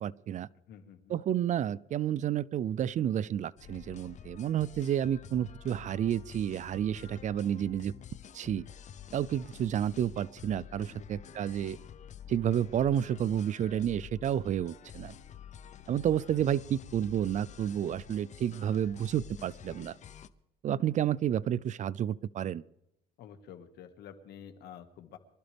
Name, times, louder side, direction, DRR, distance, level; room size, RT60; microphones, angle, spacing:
voice 1, 0.0-0.5 1.1-7.9 8.3-8.6 9.1-11.8 12.3-15.1 15.9-20.0 20.6-22.6, right 10 dB, 45° right, 20 dB, 0.5 m, -30 dB
voice 2, 0.7-1.2 10.9-11.4 23.2-25.2, left 8 dB, 75° left, 7 dB, 1.8 m, -50 dB
sound 1, 3.6-20.3, left 9 dB, 45° left, 0.7 m, -49 dB
24.0 x 13.0 x 3.5 m, 0.81 s
cardioid pair, 110°, 17 cm